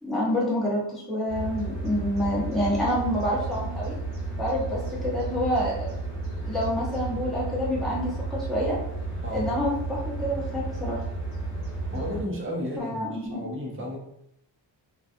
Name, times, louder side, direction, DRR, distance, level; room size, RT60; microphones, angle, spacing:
voice 1, 0.0-3.9 4.4-5.9 6.4-8.8 9.3-11.0 12.8-13.5, equal, ahead, -8 dB, 0.9 m, -27 dB
sound 1, 1.3-12.2, right 3 dB, 75° right, 1.0 m, -33 dB
voice 2, 11.9-14.0, left 1 dB, 30° right, -2 dB, 0.6 m, -33 dB
2.4 x 2.2 x 2.6 m, 0.78 s
wide cardioid pair, 145°, 46 cm